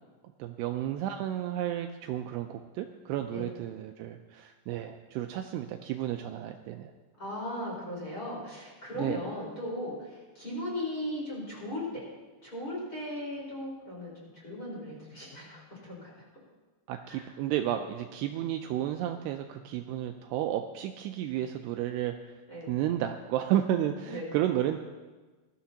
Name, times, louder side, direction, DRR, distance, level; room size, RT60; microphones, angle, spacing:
voice 1, 0.4-6.9 9.0-9.2 16.9-22.1 22.7-24.8, right 12 dB, 90° right, 5 dB, 2.4 m, -32 dB
voice 2, 7.2-12.1 12.4-16.1 17.1-17.3 22.5-22.7 24.1-24.3, left 1 dB, 20° left, -6 dB, 4.6 m, -37 dB
20.5 x 13.0 x 2.9 m, 1.3 s
omnidirectional pair, 5.3 m